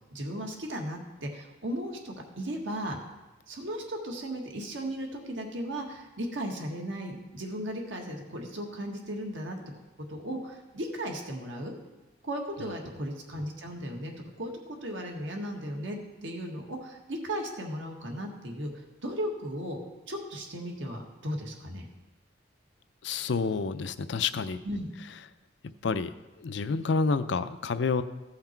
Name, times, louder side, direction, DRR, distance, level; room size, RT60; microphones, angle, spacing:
voice 1, 0.1-3.0 3.5-9.6 10.1-11.7 12.2-14.5 14.8-18.7 19.0-19.8 20.1-21.9 24.6-24.9, equal, 75° right, 1 dB, 1.6 m, -36 dB
voice 2, 23.0-24.6 25.8-26.1 26.4-28.0, left 4 dB, 70° left, 12 dB, 0.5 m, -28 dB
15.0 x 5.8 x 4.5 m, 1.1 s
head